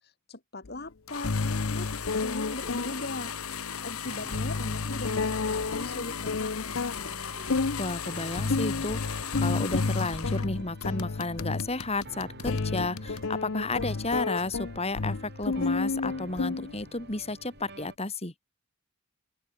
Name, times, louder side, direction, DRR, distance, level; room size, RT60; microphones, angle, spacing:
voice 1, 0.0-1.9 2.2-3.3 3.8-7.6, left 2 dB, 50° left, 4.1 m, -40 dB
sound 1, 0.6-0.7 1.2-17.1, left 3 dB, 65° left, 0.8 m, -31 dB
sound 2, 1.1-10.5 10.8-13.3, left 8 dB, 85° left, 2.3 m, -38 dB
sound 3, 2.5-17.9, right 3 dB, 50° right, 4.3 m, -51 dB
voice 2, 7.8-18.3, left 2 dB, 30° left, 2.9 m, -32 dB
open air
head